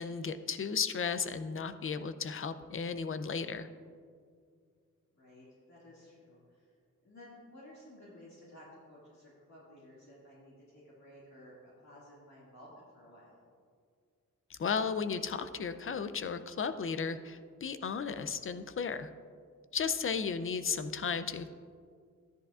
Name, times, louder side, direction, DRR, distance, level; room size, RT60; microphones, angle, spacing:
voice 1, 0.0-3.7 14.5-19.1 19.7-21.5, left 6 dB, 40° left, 11 dB, 0.5 m, -34 dB
voice 2, 5.1-6.7 7.0-13.4, left 1 dB, 60° left, -8 dB, 2.2 m, -55 dB
13.5 x 10.5 x 2.4 m, 2.1 s
wide cardioid pair, 115°, 31 cm